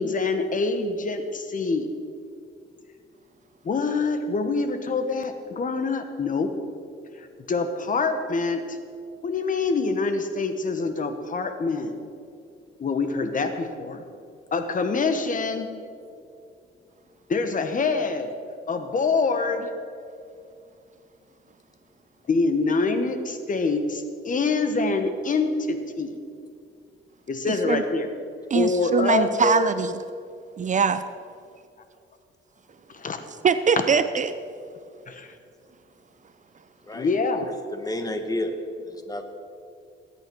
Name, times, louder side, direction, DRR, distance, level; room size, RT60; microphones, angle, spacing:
voice 1, 0.0-1.9 3.6-6.5 7.2-8.8 9.2-11.9 12.8-14.0 14.5-15.7 17.3-18.3 18.7-19.7 22.3-26.2 27.3-28.1 28.5-29.7 32.9-33.2 35.1-35.3 36.9-37.5, left 4 dB, 40° left, 8 dB, 1.2 m, -25 dB
voice 2, 27.5-27.8 28.5-29.9 30.6-31.0 33.4-34.3, right 6 dB, 40° right, 12 dB, 0.6 m, -22 dB
voice 3, 37.4-38.6 38.8-39.2, left 1 dB, 20° left, 6 dB, 1.5 m, -31 dB
19.0 x 8.9 x 4.7 m, 2.4 s
cardioid pair, 90°, 20 cm